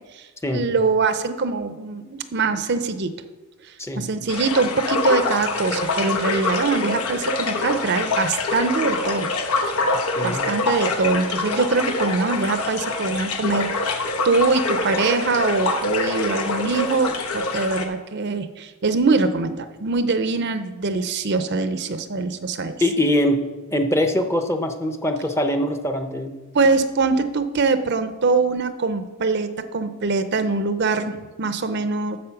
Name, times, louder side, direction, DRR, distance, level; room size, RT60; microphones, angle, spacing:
voice 1, 0.1-3.1 4.0-9.3 10.2-22.7 26.5-32.2, right 4 dB, 50° right, 10 dB, 0.6 m, -23 dB
sound 1, 4.3-17.9, left 3 dB, 80° left, 1.1 m, -25 dB
voice 2, 10.2-10.5 22.8-26.4, left 1 dB, 10° left, 6 dB, 0.7 m, -23 dB
8.6 x 7.4 x 5.8 m, 1.2 s
head